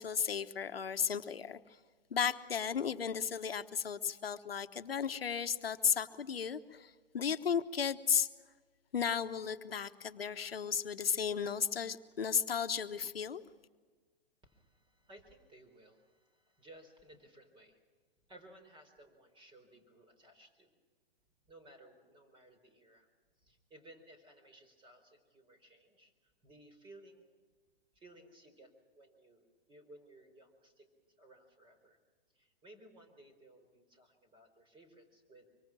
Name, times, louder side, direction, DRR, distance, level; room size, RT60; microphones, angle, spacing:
voice 1, 0.0-1.6 2.1-8.3 8.9-13.4, left 7 dB, 85° left, 9 dB, 1.1 m, -34 dB
voice 2, 14.4-17.8 18.3-20.7 21.5-23.1 23.4-27.3 27.9-30.9 31.2-32.0 32.3-35.6, right 1 dB, 15° right, 7 dB, 4.5 m, -59 dB
25.0 x 24.0 x 6.1 m, 1.4 s
hypercardioid pair, 120°, 29 cm